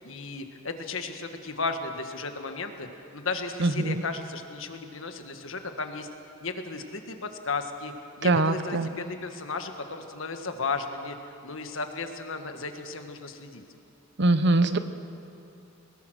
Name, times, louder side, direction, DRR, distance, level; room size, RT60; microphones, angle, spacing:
voice 1, 0.0-6.1 6.4-13.6, left 4 dB, 70° left, 6 dB, 1.6 m, -35 dB
voice 2, 3.6-4.0 8.2-8.9 14.2-14.8, right 2 dB, 55° right, 11 dB, 0.9 m, -22 dB
22.0 x 20.5 x 6.4 m, 2.6 s
head